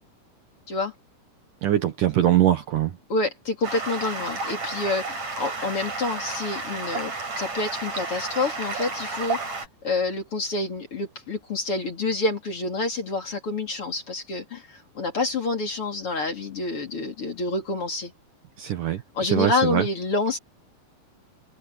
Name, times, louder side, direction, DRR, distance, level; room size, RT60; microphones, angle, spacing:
voice 1, 1.6-2.9 18.6-19.0 19.3-19.8, right 11 dB, 60° right, 2.5 m, -22 dB
voice 2, 3.1-9.4 9.8-18.1 19.1-20.4, left 3 dB, 35° left, 3.5 m, -28 dB
Stream, 3.6-9.7, right 3 dB, 40° right, 7.2 m, -32 dB
omnidirectional pair, 4.7 m